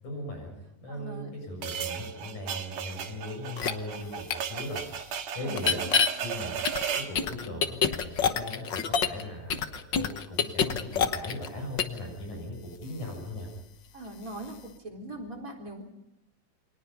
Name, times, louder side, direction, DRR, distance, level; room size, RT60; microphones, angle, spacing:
voice 1, 0.0-4.8 5.3-5.8 6.2-6.5 6.9-13.5, left 1 dB, 65° left, 2 dB, 8.5 m, -38 dB
voice 2, 0.9-1.3 5.4-6.1 13.9-15.8, right 1 dB, 25° right, 0 dB, 4.1 m, -41 dB
sound 1, 1.6-7.2, right 8 dB, 60° right, 2.4 m, -35 dB
sound 2, 3.6-3.7 4.3-4.4 5.6-6.1 6.6-9.2 9.5-11.5 11.8-12.0, left 7 dB, 80° left, 1.0 m, -26 dB
28.5 x 24.5 x 5.6 m, 0.83 s
omnidirectional pair, 3.8 m